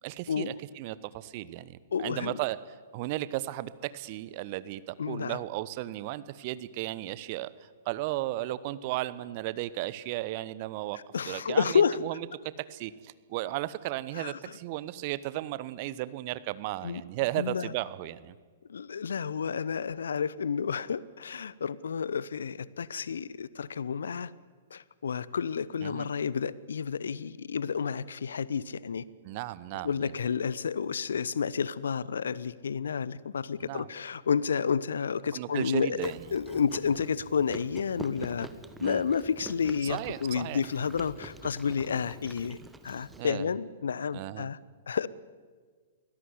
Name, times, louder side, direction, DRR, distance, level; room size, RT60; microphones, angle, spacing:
voice 1, 0.0-2.6 2.9-11.0 11.3-12.3 12.6-18.4 25.8-26.1 29.2-30.1 33.6-33.9 35.3-36.3 38.8-39.1 39.8-40.6 43.1-43.5 44.1-44.5, right 16 dB, 40° right, 17 dB, 1.0 m, -35 dB
voice 2, 1.9-2.4 5.0-5.4 11.1-12.0 14.1-14.4 16.8-17.0 17.4-17.7 18.7-24.3 24.7-29.1 29.8-38.5 38.8-42.6 42.8-44.6 44.9-45.1, left 6 dB, 65° left, 20 dB, 0.8 m, -30 dB
Chewing mastication, 36.0-43.2, right 2 dB, 5° right, 1.4 m, -46 dB
22.5 x 17.5 x 9.8 m, 1.5 s
figure-of-eight pair, 110°, 0 cm